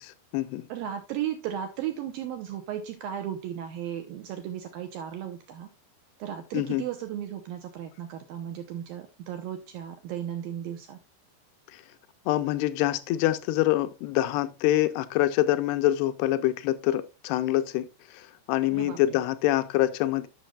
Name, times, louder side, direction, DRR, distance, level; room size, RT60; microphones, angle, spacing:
voice 1, 0.7-5.7 6.2-11.0 18.7-19.2, right 10 dB, 90° right, 2.0 m, -35 dB
voice 2, 12.3-20.3, left 14 dB, 85° left, 2.4 m, -25 dB
14.0 x 6.4 x 2.3 m
omnidirectional pair, 5.2 m